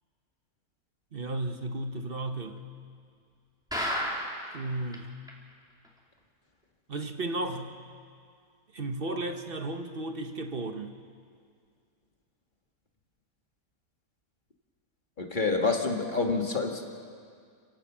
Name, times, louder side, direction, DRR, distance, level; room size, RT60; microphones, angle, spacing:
voice 1, 1.1-2.6 4.5-5.1 6.9-7.8 8.7-10.9, right 2 dB, 40° right, 6 dB, 1.2 m, -34 dB
sound 1, 3.7-4.6 4.9-5.0 5.3-5.4 5.8-5.9, equal, ahead, 2.9 m, -31 dB
voice 2, 15.2-17.0, left 3 dB, 30° left, 2 dB, 2.0 m, -28 dB
30.0 x 16.0 x 6.2 m, 2.1 s
omnidirectional pair, 1.6 m